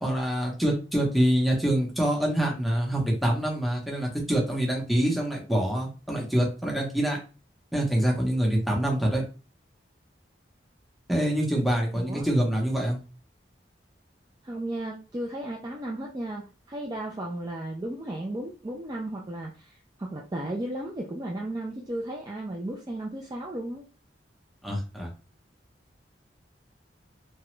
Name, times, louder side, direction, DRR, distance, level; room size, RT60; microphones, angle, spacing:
voice 1, 0.0-7.2 7.7-9.2 11.1-13.0 24.6-25.1, right 1 dB, ahead, -2 dB, 0.8 m, -25 dB
voice 2, 11.9-12.3 14.4-23.8, right 1 dB, 20° right, -1 dB, 0.3 m, -34 dB
2.9 x 2.2 x 3.1 m, 0.34 s
head